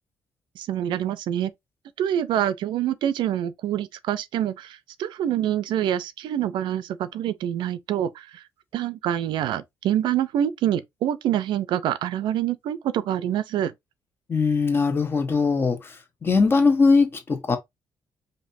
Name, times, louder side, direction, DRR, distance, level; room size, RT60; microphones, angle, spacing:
voice 1, 0.6-1.5 2.0-8.4 8.7-13.7, right 11 dB, 85° right, 0.5 m, -26 dB
voice 2, 14.3-16.0 16.2-17.6, left 4 dB, 30° left, 0.9 m, -20 dB
5.1 x 2.8 x 2.6 m
cardioid pair, 145°, 8 cm